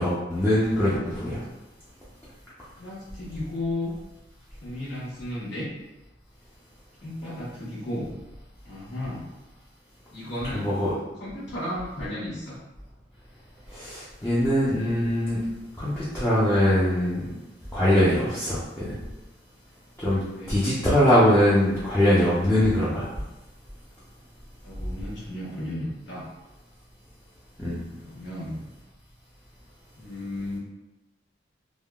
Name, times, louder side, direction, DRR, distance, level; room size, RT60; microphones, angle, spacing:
voice 1, 0.0-1.4 10.5-10.9 13.7-15.4 15.8-17.2 17.7-19.0 20.0-20.2 20.5-23.1 27.6-27.8, equal, 10° left, -10 dB, 0.5 m, -22 dB
voice 2, 2.8-3.9 4.6-5.7 7.0-8.1 8.6-9.3 10.1-10.7 11.2-12.6 20.3-20.6 24.6-26.3 27.9-28.7 30.0-30.6, left 1 dB, 80° left, -9 dB, 1.4 m, -34 dB
3.4 x 2.2 x 2.3 m, 1.0 s
head